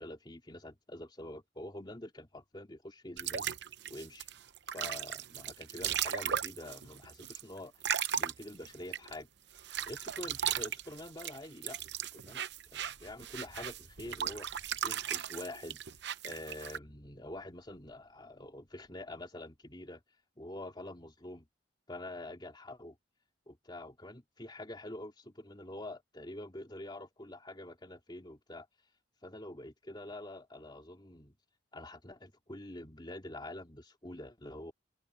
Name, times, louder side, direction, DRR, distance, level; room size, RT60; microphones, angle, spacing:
voice 1, 0.0-3.5 3.9-4.3 4.7-7.7 8.1-9.3 9.8-11.8 12.1-12.4 12.7-14.6 14.8-15.8 16.2-20.0 20.4-21.5 21.9-23.0 23.5-28.7 29.2-31.4 31.7-34.7, left 1 dB, 25° left, 2.6 m, -46 dB
Wind, 2.3-2.6 3.0-3.1 3.4-6.9 7.2-19.4 19.6-19.7, equal, 60° left, 6.0 m, -66 dB
sound 1, 3.2-9.2 9.6-16.8, right 9 dB, 65° right, 0.8 m, -37 dB
open air
head